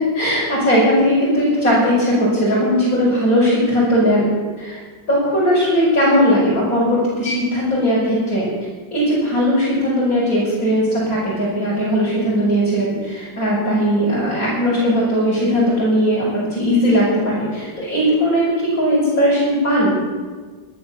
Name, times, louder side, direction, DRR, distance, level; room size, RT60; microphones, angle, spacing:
voice 1, 0.0-4.8 5.1-8.5 8.9-20.0, equal, 45° left, -10 dB, 6.6 m, -18 dB
14.0 x 12.5 x 7.4 m, 1.4 s
omnidirectional pair, 2.0 m